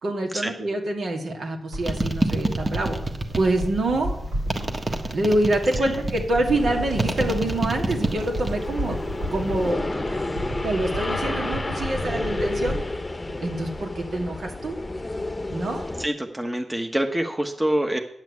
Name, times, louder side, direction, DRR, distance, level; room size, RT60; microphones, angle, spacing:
voice 1, 0.0-3.0 3.4-4.2 5.1-9.0 9.3-9.9 10.6-12.8 13.4-14.8 15.5-15.8, right 1 dB, 70° right, 1 dB, 2.4 m, -26 dB
sound 1, 1.7-14.2 14.5-14.6, equal, 90° right, 5.2 m, -33 dB
sound 2, 1.9-3.7 4.5-6.3 7.0-8.7 9.0-9.5, right 2 dB, 35° right, 1.5 m, -27 dB
sound 3, 6.5-16.1, left 2 dB, 25° left, 0.9 m, -31 dB
voice 2, 16.0-18.0, right 1 dB, 15° right, 5 dB, 1.2 m, -26 dB
9.6 x 6.0 x 8.5 m, 0.74 s
cardioid pair, 50°, 0 cm